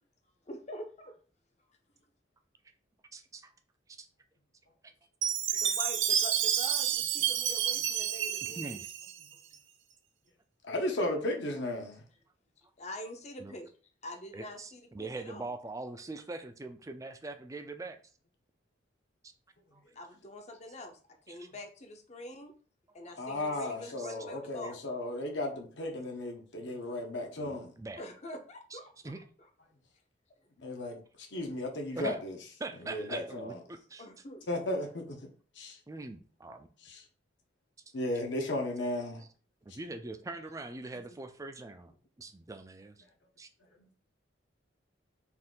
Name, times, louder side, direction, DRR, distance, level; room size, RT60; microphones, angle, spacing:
voice 1, 0.5-1.2 5.5-8.8 12.8-13.7 14.0-15.5 19.9-22.5 22.9-24.8 28.0-29.1 34.0-34.5, left 1 dB, 35° left, 0.7 m, -45 dB
voice 2, 3.1-3.5 3.9-4.1 4.8-4.9 5.5-5.7 6.1-6.2 8.4-8.9 13.4-13.6 14.3-18.0 19.7-19.8 21.3-21.5 23.0-23.2 24.0-24.1 24.6-24.7 27.4-28.0 28.7-28.8 29.0-29.2 31.9-32.2 32.6-34.1 35.9-36.7 39.6-43.0 43.4-43.5, right 2 dB, 15° right, 0.4 m, -43 dB
Chime, 5.2-9.6, right 9 dB, 80° right, 0.5 m, -30 dB
voice 3, 10.6-12.0 23.2-27.7 30.6-32.4 32.8-33.6 34.5-35.2 35.5-35.8 36.8-37.0 37.9-39.2 43.8-43.9, left 1 dB, 65° left, 1.0 m, -35 dB
4.3 x 2.5 x 3.7 m
head